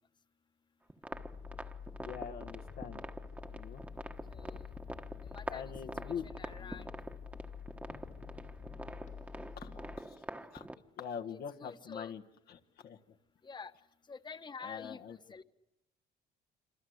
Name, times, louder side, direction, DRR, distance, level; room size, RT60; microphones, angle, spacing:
sound 1, 0.9-10.8, right 1 dB, 10° right, 1.3 m, -46 dB
sound 2, 1.1-10.0, left 6 dB, 45° left, 1.8 m, -48 dB
voice 1, 2.0-3.0 3.5-3.8 5.5-6.8 9.6-10.2 10.5-10.7 11.0-12.2 12.5-13.2 14.6-15.2, left 7 dB, 65° left, 5 dB, 1.5 m, -44 dB
voice 2, 4.3-4.7 5.2-5.7 6.0-7.0 11.6-12.1 13.4-13.7 14.1-15.4, left 5 dB, 25° left, 10 dB, 1.3 m, -48 dB
27.0 x 26.0 x 8.0 m, 0.89 s
cardioid pair, 110°, 17 cm